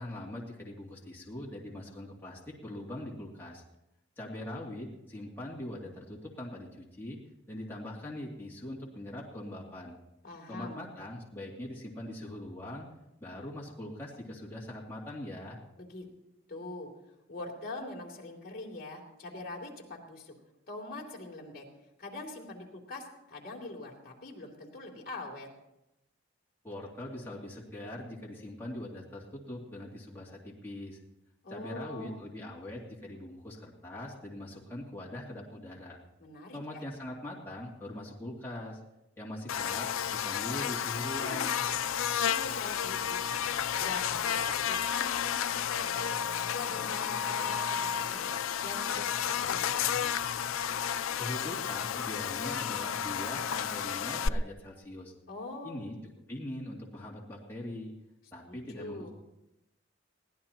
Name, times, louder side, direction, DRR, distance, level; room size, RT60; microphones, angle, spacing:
voice 1, 0.0-3.6 4.2-7.2 7.5-10.0 10.5-12.9 13.2-15.6 26.6-31.0 31.5-36.0 36.5-38.8 39.2-41.7 51.1-55.1 55.6-55.9 56.3-57.9 58.3-59.1, left 1 dB, 10° left, -5 dB, 2.5 m, -42 dB
voice 2, 10.2-10.8 15.8-16.1 16.5-16.9 17.3-20.3 20.7-21.6 22.0-25.5 31.4-32.2 36.2-36.8 42.2-48.3 48.6-49.9 55.3-55.9 58.4-59.1, left 2 dB, 45° left, -1 dB, 2.9 m, -43 dB
Buzz, 39.5-54.3, left 8 dB, 75° left, 0.4 m, -32 dB
22.5 x 16.0 x 2.9 m, 0.90 s
head